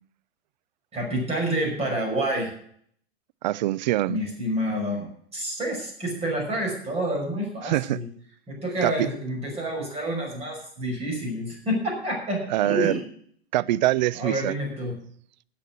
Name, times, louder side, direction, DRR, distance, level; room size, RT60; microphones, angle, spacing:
voice 1, 0.9-2.5 4.1-8.0 8.5-13.0 14.1-15.0, right 1 dB, 20° right, 5.7 m, -28 dB
voice 2, 3.4-4.2 7.6-8.0 8.8-9.1 12.5-13.0 13.5-14.5, right 15 dB, 45° right, 0.5 m, -24 dB
13.0 x 8.5 x 6.1 m
figure-of-eight pair, 95°, 32 cm